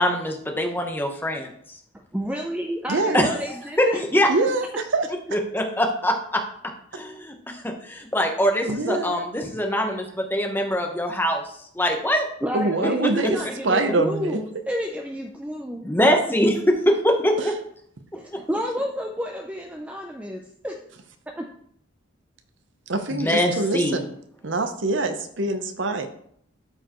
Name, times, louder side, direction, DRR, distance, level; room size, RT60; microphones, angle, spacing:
voice 1, 0.0-1.5 3.1-3.3 3.8-4.3 5.3-6.4 6.9-11.4 11.7-12.3 15.8-17.5 23.1-24.0, equal, 10° left, 3 dB, 0.9 m, -23 dB
voice 2, 2.1-4.0 12.4-16.1 18.1-20.8 21.3-21.5, equal, 5° right, 2 dB, 0.5 m, -30 dB
voice 3, 2.9-3.2 4.3-5.1 8.7-9.2 12.5-14.4 17.4-17.5 22.9-24.1 24.4-26.1, right 2 dB, 65° right, 8 dB, 0.8 m, -24 dB
12.5 x 4.6 x 3.0 m, 0.67 s
head